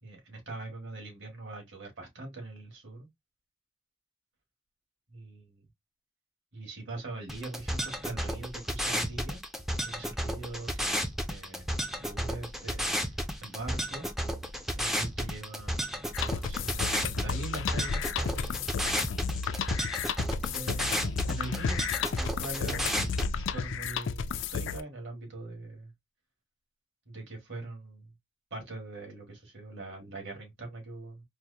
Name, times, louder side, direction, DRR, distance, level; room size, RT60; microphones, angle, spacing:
voice 1, 0.0-3.1 5.1-5.6 6.5-9.4 9.8-14.1 14.8-16.0 16.3-18.7 20.4-21.8 22.1-22.9 23.4-25.9 27.1-28.1 28.5-31.2, right 2 dB, 65° right, 1.8 m, -42 dB
sound 1, 7.3-23.3, equal, ahead, 0.4 m, -33 dB
sound 2, 16.1-24.8, left 6 dB, 65° left, 0.4 m, -33 dB
4.5 x 2.0 x 2.6 m
head